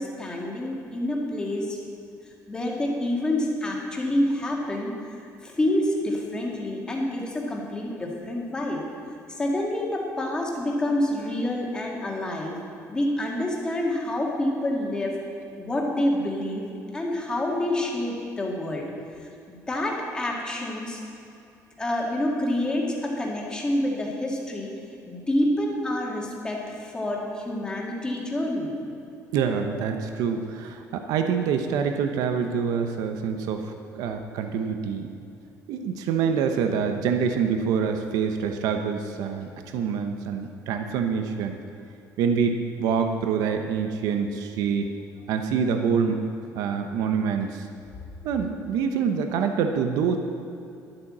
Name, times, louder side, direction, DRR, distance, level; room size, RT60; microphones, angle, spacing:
voice 1, 0.0-1.9 2.5-5.2 5.4-8.8 9.3-12.6 12.9-15.2 15.6-16.7 16.9-18.9 19.2-21.0 21.8-24.7 25.1-28.7 29.8-29.9, left 1 dB, 15° left, -1 dB, 1.8 m, -27 dB
voice 2, 29.3-35.1 35.7-41.6 42.2-44.9 45.3-46.2 46.5-47.7 48.2-50.2, right 6 dB, 80° right, 6 dB, 0.9 m, -26 dB
11.5 x 8.8 x 7.4 m, 2.6 s
cardioid pair, 180°, 6 cm